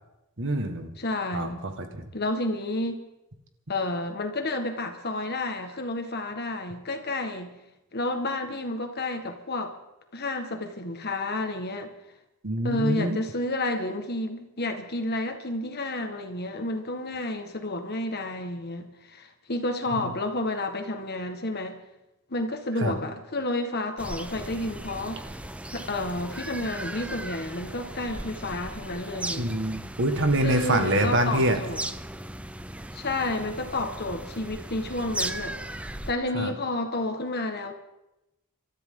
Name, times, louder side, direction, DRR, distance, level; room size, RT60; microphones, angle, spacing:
voice 1, 0.4-0.9 1.3-2.0 12.4-13.2 20.0-20.1 22.8-23.0 29.4-31.6 36.3-36.5, right 1 dB, 60° right, 6 dB, 1.8 m, -25 dB
voice 2, 1.0-1.7 2.1-3.0 3.7-7.5 7.9-9.7 10.1-11.9 12.6-21.8 22.3-25.2 25.7-29.5 30.4-31.8 32.9-35.6 36.1-37.7, left 2 dB, 50° left, 5 dB, 1.7 m, -30 dB
sound 1, 24.0-36.1, right 1 dB, 5° right, 0.6 m, -37 dB
26.5 x 13.5 x 3.9 m, 0.92 s
head